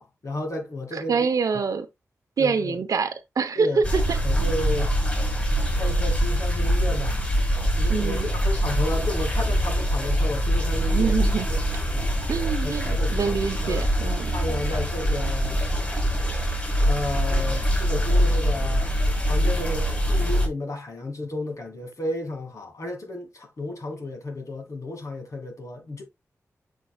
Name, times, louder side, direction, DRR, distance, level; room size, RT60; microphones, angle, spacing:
voice 1, 0.0-1.3 2.4-2.8 3.5-3.8 4.2-4.9 5.8-7.2 7.8-11.1 11.5-11.6 11.9-12.1 12.6-13.4 13.6-13.8 14.3-15.6 16.8-26.0, left 1 dB, 65° left, 2.5 m, -33 dB
voice 2, 0.9-1.9 2.4-4.0 7.9-8.3 10.9-11.5 12.3-14.3, right 5 dB, 80° right, 0.9 m, -25 dB
sound 1, 3.8-20.5, equal, 25° left, 4.6 m, -24 dB
7.4 x 5.6 x 2.4 m
cardioid pair, 55°, 6 cm